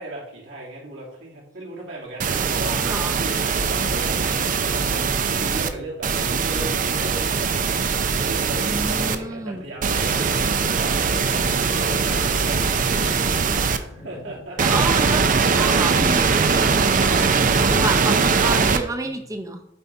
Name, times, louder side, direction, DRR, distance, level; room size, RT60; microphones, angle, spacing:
voice 1, 0.0-14.9 17.0-17.9 19.0-19.3, right 1 dB, 65° right, -4 dB, 2.9 m, -37 dB
sound 1, 2.2-5.7 6.0-9.2 9.8-13.8 14.6-18.8, right 5 dB, 45° right, 0.6 m, -21 dB
voice 2, 2.8-3.2 8.6-9.6 14.6-15.3 15.5-19.6, right 2 dB, 15° right, 5 dB, 0.8 m, -29 dB
sound 2, 4.7-14.4, left 1 dB, 25° left, 1.2 m, -42 dB
8.8 x 4.1 x 4.7 m, 0.80 s
head